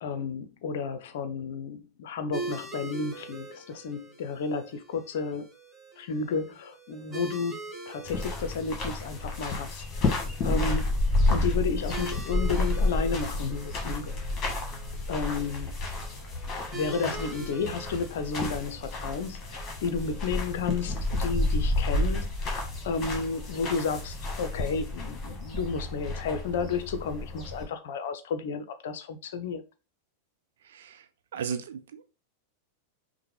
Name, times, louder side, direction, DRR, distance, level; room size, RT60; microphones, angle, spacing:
voice 1, 0.0-5.5 6.0-7.6 7.9-11.0 11.3-14.2 15.1-15.8 16.7-29.6, left 5 dB, 55° left, 0.6 m, -32 dB
sound 1, 2.3-21.5, right 3 dB, 15° right, 1.7 m, -44 dB
sound 2, 8.1-27.7, left 2 dB, 30° left, 1.5 m, -30 dB
voice 2, 30.7-31.0 31.3-32.0, right 7 dB, 60° right, 0.6 m, -35 dB
5.6 x 2.2 x 3.3 m
figure-of-eight pair, 90°, 0 cm